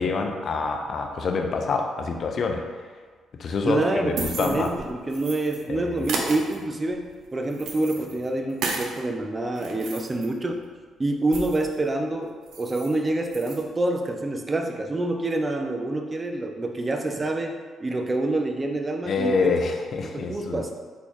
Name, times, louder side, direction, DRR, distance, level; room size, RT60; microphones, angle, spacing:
voice 1, 0.0-2.6 3.4-4.7 5.7-6.1 19.0-20.7, left 4 dB, 55° left, 4 dB, 0.5 m, -26 dB
voice 2, 3.7-10.6 11.0-12.3 12.6-19.5 20.0-20.7, right 2 dB, 30° right, 4 dB, 0.5 m, -27 dB
sound 1, 3.8-5.6 6.0-9.0 9.4-11.8 12.1-12.2 12.4-12.9 13.2-13.6, right 3 dB, 70° right, 0.6 m, -34 dB
4.0 x 3.6 x 3.1 m, 1.5 s
hypercardioid pair, 50°, 0 cm